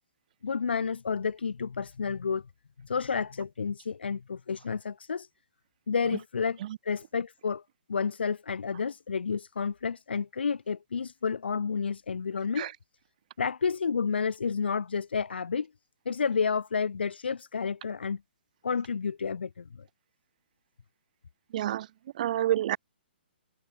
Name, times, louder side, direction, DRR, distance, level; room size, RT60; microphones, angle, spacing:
voice 1, 0.4-2.4 2.8-5.3 5.9-7.6 7.9-12.7 13.4-15.7 16.0-18.2 18.6-19.7, left 5 dB, 75° left, 5.1 m, -30 dB
voice 2, 21.5-21.9 22.2-22.8, right 12 dB, 45° right, 0.6 m, -27 dB
hypercardioid pair, 140°, 6 cm